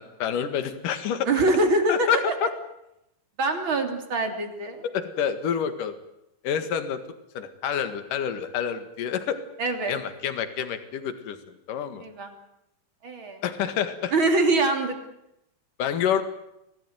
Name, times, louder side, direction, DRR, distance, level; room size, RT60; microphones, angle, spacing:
voice 1, 0.0-1.3 1.9-2.5 4.9-5.9 6.4-7.0 7.3-9.4 9.9-11.4 11.7-12.0 13.4-14.1 15.8-16.2, left 8 dB, 60° left, 9 dB, 3.3 m, -27 dB
voice 2, 1.3-2.2 3.4-4.9 9.6-10.0 12.0-12.3 13.0-13.4 14.1-15.0, right 2 dB, 35° right, 5 dB, 3.4 m, -24 dB
26.0 x 18.0 x 9.4 m, 0.84 s
omnidirectional pair, 4.5 m